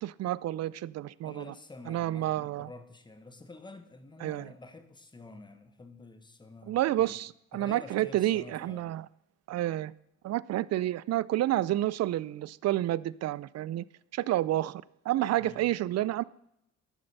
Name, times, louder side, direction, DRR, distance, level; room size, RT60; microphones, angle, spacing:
voice 1, 0.0-1.5 1.9-2.7 4.2-4.5 6.7-9.1 9.5-9.9 10.2-13.8 14.1-16.2, right 14 dB, 60° right, 21 dB, 0.4 m, -30 dB
voice 2, 1.2-7.2 7.5-8.9 15.4-15.6, left 3 dB, 15° left, 8 dB, 1.2 m, -49 dB
11.5 x 6.7 x 5.5 m, 0.80 s
cardioid pair, 90°, 30 cm